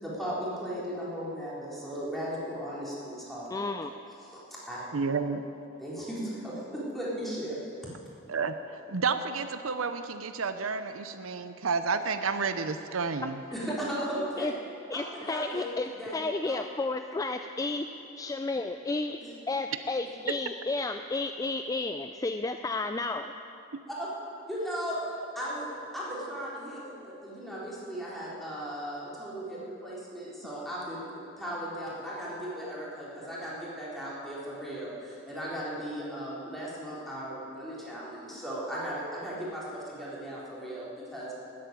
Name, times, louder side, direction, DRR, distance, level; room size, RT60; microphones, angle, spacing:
voice 1, 0.0-3.7 4.2-4.8 5.8-7.6 13.5-14.5 14.9-15.7 15.9-16.2 16.4-16.6 19.2-19.3 23.9-24.1 24.5-25.0 25.4-25.7 25.9-31.0 31.4-41.3, equal, ahead, -8 dB, 3.7 m, -36 dB
voice 2, 3.5-3.9 14.4-14.5 14.9-17.9 18.2-23.3, left 3 dB, 15° left, 7 dB, 0.3 m, -32 dB
voice 3, 4.9-5.4 8.3-13.4, right 4 dB, 85° right, 10 dB, 0.7 m, -31 dB
13.0 x 8.6 x 9.4 m, 2.7 s
head